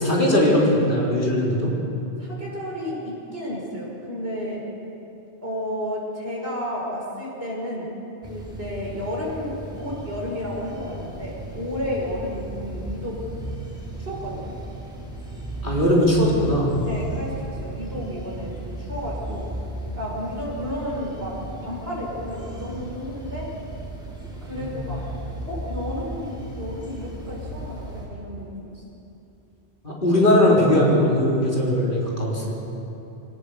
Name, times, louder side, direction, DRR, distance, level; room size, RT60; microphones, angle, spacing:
voice 1, 0.0-1.7 15.6-16.7 24.6-24.8 29.8-32.6, left 1 dB, 50° left, -4 dB, 4.1 m, -19 dB
voice 2, 2.2-4.7 5.4-7.9 8.3-13.2 14.0-14.5 16.9-19.5 20.0-21.4 21.6-23.5 24.4-25.0 25.5-29.0, equal, 65° right, -4 dB, 5.6 m, -32 dB
sound 1, 8.2-28.1, right 1 dB, 5° right, 4.3 m, -36 dB
23.0 x 18.0 x 6.8 m, 2.9 s
omnidirectional pair, 1.1 m